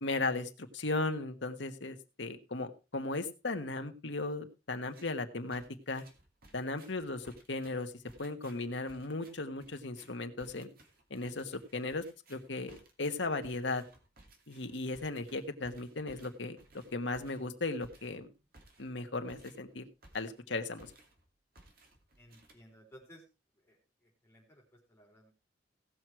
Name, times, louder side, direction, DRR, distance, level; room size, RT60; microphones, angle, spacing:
voice 1, 0.0-6.0 6.5-7.9 8.2-10.7 11.1-12.0 12.3-13.8 14.5-16.6 16.9-18.3 18.8-19.9 20.1-20.9, left 3 dB, 75° left, 6 dB, 1.5 m, -36 dB
sound 1, 4.8-5.2 5.5-20.5 20.8-21.3 21.6-23.0, right 2 dB, 55° right, 2.6 m, -60 dB
voice 2, 22.2-23.3 23.6-25.3, equal, 15° left, -2 dB, 3.8 m, -58 dB
17.5 x 6.3 x 4.5 m, 0.30 s
head